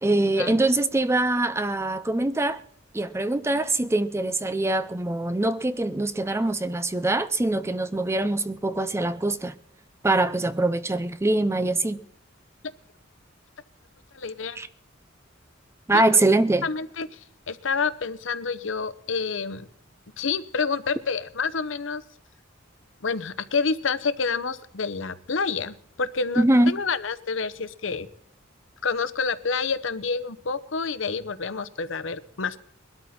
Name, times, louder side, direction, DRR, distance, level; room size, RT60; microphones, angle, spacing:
voice 1, 0.0-2.6 2.9-9.6 10.0-12.0 14.5-14.7 15.9-16.7 26.4-26.8, right 2 dB, 15° right, 0.5 m, -23 dB
voice 2, 14.1-14.6 15.9-16.0 16.6-17.2 17.5-19.7 20.2-22.0 23.0-28.1 28.8-32.6, left 5 dB, 70° left, 0.8 m, -28 dB
21.0 x 12.5 x 4.3 m
head